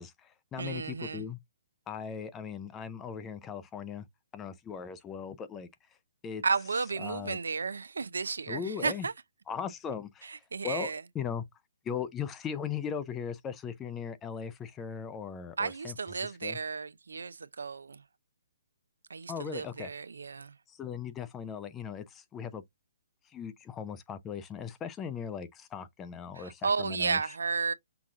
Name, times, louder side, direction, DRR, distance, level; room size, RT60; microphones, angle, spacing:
voice 1, 0.0-1.4 1.9-4.1 4.3-5.7 6.2-6.4 7.0-7.4 8.5-9.1 9.5-11.5 11.8-15.9 16.2-16.6 19.3-19.9 20.7-22.6 23.2-27.3, left 7 dB, 15° left, 0.4 m, -38 dB
voice 2, 0.6-1.2 6.4-9.1 10.5-11.0 15.6-18.0 19.1-20.5 26.4-27.7, right 4 dB, 90° right, 0.5 m, -33 dB
5.9 x 2.4 x 3.7 m
hypercardioid pair, 155°, 0 cm